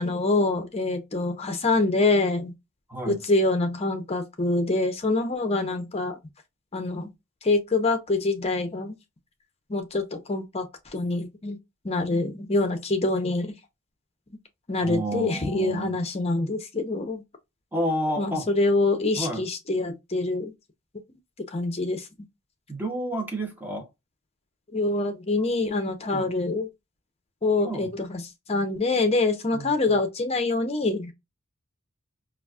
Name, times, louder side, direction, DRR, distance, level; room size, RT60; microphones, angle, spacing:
voice 1, 0.0-2.5 3.1-6.2 6.7-7.1 7.4-8.9 9.7-10.7 10.9-11.6 11.8-13.5 14.7-17.2 18.2-20.5 21.5-22.1 24.7-26.7 27.4-28.2 28.5-31.1, left 2 dB, 30° left, 0.6 m, -25 dB
voice 2, 2.9-3.2 14.8-16.0 17.7-18.5 19.2-19.4 22.7-23.9 26.1-26.3 27.6-27.9 29.5-30.0, right 1 dB, 10° right, 0.9 m, -30 dB
4.0 x 2.4 x 2.3 m
head